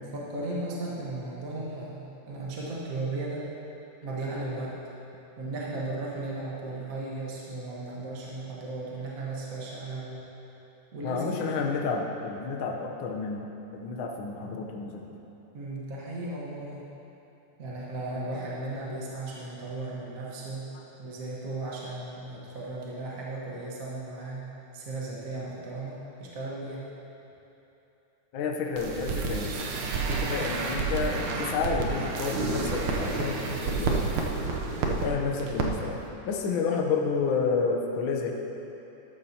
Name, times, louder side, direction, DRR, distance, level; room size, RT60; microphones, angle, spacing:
voice 1, 0.0-3.5 4.0-4.8 5.4-10.3 10.9-11.4 15.5-16.9 17.6-20.7 21.0-24.5 24.7-26.9 30.2-30.4, right 2 dB, 45° right, -5 dB, 1.1 m, -36 dB
voice 2, 11.0-15.0 20.7-20.8 28.3-29.5 30.0-34.0 34.9-36.0 36.2-38.3, left 5 dB, 90° left, 0 dB, 1.1 m, -30 dB
sound 1, 28.8-35.1 35.4-35.7 35.9-36.0, right 4 dB, 75° right, 2.3 m, -30 dB
12.5 x 12.0 x 2.9 m, 3.0 s
omnidirectional pair, 3.6 m